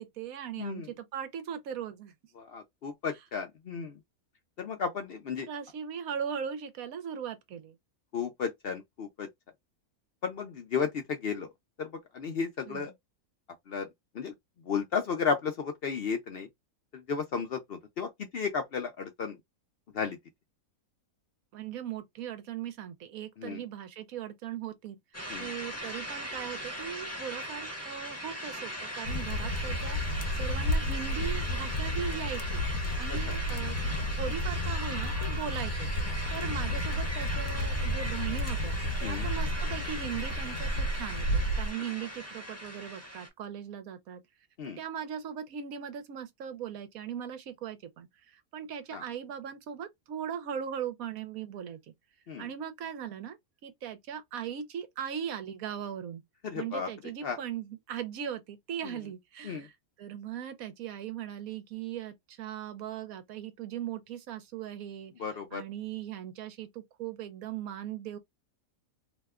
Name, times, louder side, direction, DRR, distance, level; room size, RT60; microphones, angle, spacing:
voice 1, 0.0-2.1 5.4-7.8 12.7-12.9 21.5-25.0 25.4-30.0 30.3-32.6 33.0-33.8 34.2-35.9 36.3-44.2 44.8-51.8 52.4-53.4 53.6-56.2 56.5-59.7 60.0-65.1 65.5-68.2, right 8 dB, 75° right, 1.1 m, -39 dB
voice 2, 0.6-0.9 2.4-4.0 4.6-5.5 8.1-9.3 10.2-11.5 11.8-12.9 13.7-13.9 14.1-14.3 14.7-16.5 16.9-19.4 19.9-20.2 23.4-23.6 25.3-25.5 33.3-33.4 39.0-39.3 44.6-44.8 48.9-49.0 52.3-52.5 56.4-56.9 57.2-57.4 58.8-59.0 59.4-59.7 65.2-65.6, left 6 dB, 60° left, 0.6 m, -33 dB
sound 1, 25.1-43.3, equal, 15° left, 0.8 m, -39 dB
sound 2, 29.0-41.7, equal, 75° left, 1.1 m, -32 dB
2.8 x 2.2 x 3.5 m
omnidirectional pair, 1.5 m